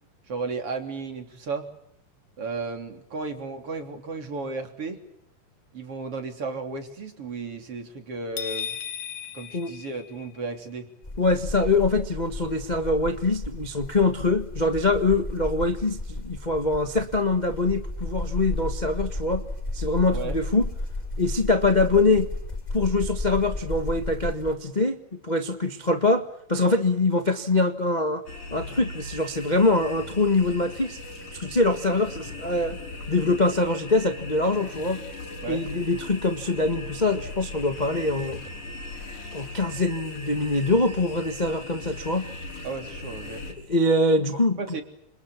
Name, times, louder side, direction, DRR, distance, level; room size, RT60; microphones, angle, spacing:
voice 1, 0.3-1.7 2.4-5.0 5.7-8.8 9.3-10.9 20.1-20.4 35.4-35.6 42.6-43.4 44.6-44.8, right 4 dB, 45° right, 5 dB, 4.2 m, -34 dB
sound 1, 8.4-10.5, left 8 dB, 85° left, 2.9 m, -35 dB
sound 2, 11.0-24.5, left 2 dB, 15° left, 2.8 m, -33 dB
voice 2, 11.2-19.4 19.7-20.7 21.2-22.3 22.7-28.2 28.5-31.0 31.3-32.8 33.1-35.0 35.5-38.4 39.3-42.3 43.7-44.6, left 2 dB, 35° left, 7 dB, 0.7 m, -24 dB
sound 3, 28.3-43.5, left 2 dB, 70° left, 7.0 m, -39 dB
29.0 x 28.0 x 7.0 m, 0.75 s
omnidirectional pair, 3.6 m